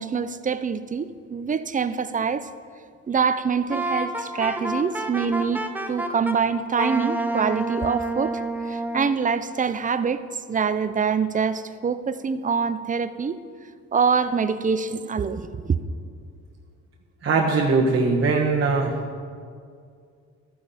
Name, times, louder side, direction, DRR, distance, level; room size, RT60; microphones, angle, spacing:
voice 1, 0.0-2.5 3.1-8.4 8.7-13.4 13.9-15.8, right 6 dB, 25° right, 12 dB, 0.6 m, -25 dB
Wind instrument woodwind instrument, 3.7-6.4 6.8-9.2, right 1 dB, 5° right, 0.9 m, -28 dB
voice 2, 17.2-18.9, right 4 dB, 45° right, -1 dB, 1.2 m, -21 dB
13.5 x 10.5 x 4.2 m, 2.2 s
cardioid pair, 90°, 30 cm